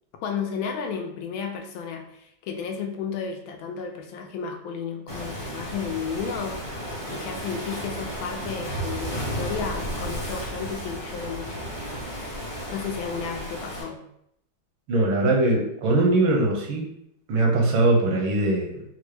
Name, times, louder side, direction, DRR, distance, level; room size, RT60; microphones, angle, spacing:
voice 1, 0.2-6.6 7.1-11.7 12.7-14.0, left 6 dB, 80° left, 4 dB, 1.4 m, -33 dB
Waves surf, 5.1-13.8, equal, 20° left, 0.5 m, -33 dB
voice 2, 14.9-16.9 17.3-18.8, right 2 dB, 80° right, 0 dB, 1.6 m, -21 dB
4.4 x 2.0 x 3.2 m, 0.76 s
omnidirectional pair, 2.2 m